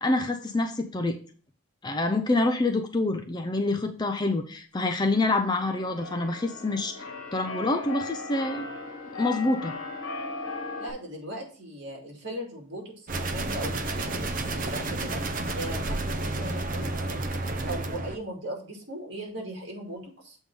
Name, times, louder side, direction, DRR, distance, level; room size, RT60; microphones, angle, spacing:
voice 1, 0.0-1.2 1.8-8.7 9.1-9.7, left 2 dB, 20° left, 7 dB, 0.5 m, -27 dB
Keyboard (musical), 5.1-10.9, left 3 dB, 85° left, 1.6 m, -37 dB
voice 2, 10.8-17.3 17.6-20.4, right 1 dB, 55° right, 0 dB, 2.4 m, -38 dB
sound 1, 13.1-18.2, right 2 dB, 40° right, 0.5 m, -31 dB
7.5 x 3.6 x 5.4 m, 0.41 s
head